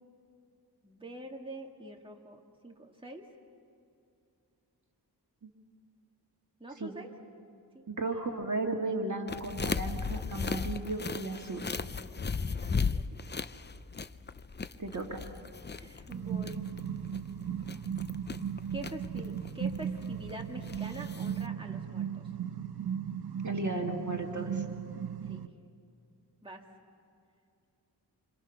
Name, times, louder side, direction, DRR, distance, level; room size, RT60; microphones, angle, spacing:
voice 1, 0.8-3.3 6.6-7.1 7.7-8.4 12.5-13.4 15.7-16.7 18.7-22.3 25.3-25.5 26.4-26.6, right 1 dB, 15° right, 0 dB, 2.0 m, -46 dB
voice 2, 7.9-11.6 14.8-15.2 23.4-24.6, right 2 dB, 45° right, 2 dB, 2.1 m, -35 dB
sound 1, 9.3-21.5, left 5 dB, 25° left, 0.5 m, -37 dB
sound 2, 16.1-25.5, right 8 dB, 70° right, 0.9 m, -37 dB
27.5 x 26.0 x 5.8 m, 2.6 s
wide cardioid pair, 90°, 40 cm